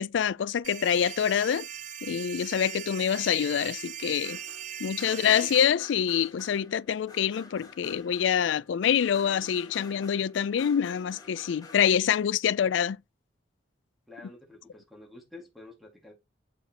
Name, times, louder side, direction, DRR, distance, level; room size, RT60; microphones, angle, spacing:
voice 1, 0.0-1.7 2.0-4.4 4.8-13.0, left 8 dB, 75° left, 0.3 m, -26 dB
sound 1, 0.6-5.6, right 10 dB, 40° right, 0.5 m, -40 dB
sound 2, 3.6-11.8, left 3 dB, 20° left, 1.8 m, -50 dB
voice 2, 5.0-5.7 14.1-16.1, left 1 dB, ahead, 1.8 m, -48 dB
8.2 x 5.0 x 2.9 m
head